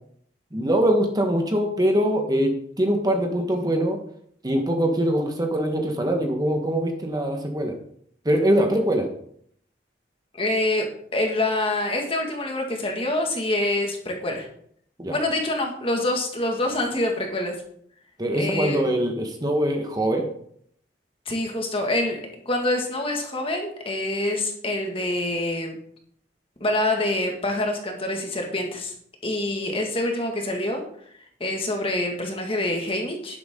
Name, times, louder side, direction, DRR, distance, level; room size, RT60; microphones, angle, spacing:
voice 1, 0.5-4.0 4.4-7.7 8.2-9.1 15.0-15.2 18.2-20.3, right 1 dB, 20° right, 3 dB, 1.4 m, -23 dB
voice 2, 10.4-14.5 15.1-17.6 18.4-18.8 21.3-22.2 22.5-25.8 26.6-28.9 29.2-30.8 31.4-33.4, left 1 dB, 30° left, 2 dB, 2.0 m, -26 dB
10.5 x 10.5 x 3.8 m, 0.66 s
head